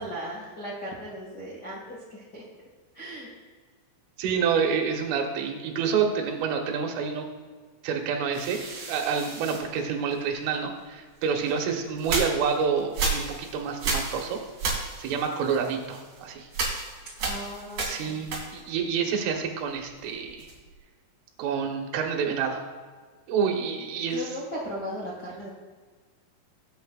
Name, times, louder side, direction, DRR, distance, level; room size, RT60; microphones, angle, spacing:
voice 1, 0.0-2.4 2.9-3.3 17.2-18.2 24.1-25.5, equal, 50° left, -6 dB, 1.2 m, -37 dB
voice 2, 4.2-7.3 7.8-8.6 8.9-14.4 15.0-16.5 17.8-20.5 21.4-22.6 23.3-24.4, right 6 dB, 80° right, 2 dB, 3.7 m, -28 dB
sound 1, 8.3-10.5 11.2-18.9 19.1-20.8, right 3 dB, 45° right, 3.4 m, -33 dB
19.0 x 8.8 x 2.5 m, 1.5 s
omnidirectional pair, 5.7 m